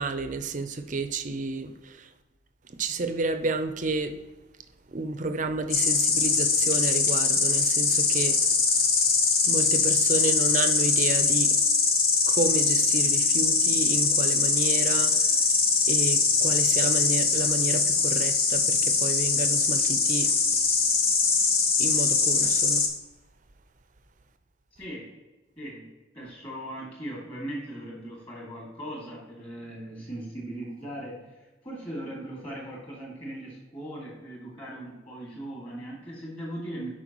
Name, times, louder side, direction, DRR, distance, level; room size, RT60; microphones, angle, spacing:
voice 1, 0.0-2.1 2.8-4.2 4.9-8.4 9.4-11.6 12.3-15.3 15.9-20.3 21.8-22.8, right 3 dB, 40° right, 8 dB, 0.5 m, -31 dB
Insect, 5.7-22.9, left 4 dB, 50° left, 1.1 m, -22 dB
voice 2, 24.8-25.1 25.6-25.9 26.1-31.3 31.6-36.9, right 1 dB, 25° left, -3 dB, 2.3 m, -39 dB
11.5 x 4.6 x 3.0 m, 1.1 s
head